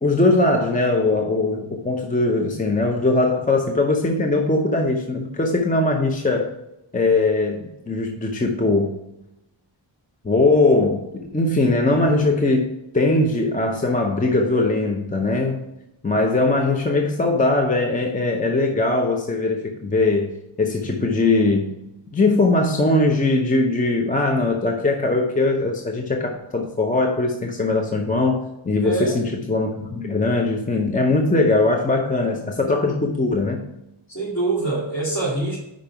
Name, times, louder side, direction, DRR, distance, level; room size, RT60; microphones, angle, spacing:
voice 1, 0.0-6.5 6.9-9.0 10.2-15.6 16.0-20.3 20.6-21.7 22.1-33.6, left 2 dB, 15° left, 2 dB, 0.6 m, -20 dB
voice 2, 28.8-29.2 34.1-35.6, right 2 dB, 35° left, -9 dB, 2.4 m, -24 dB
5.2 x 5.1 x 5.7 m, 0.88 s
wide cardioid pair, 130°, 48 cm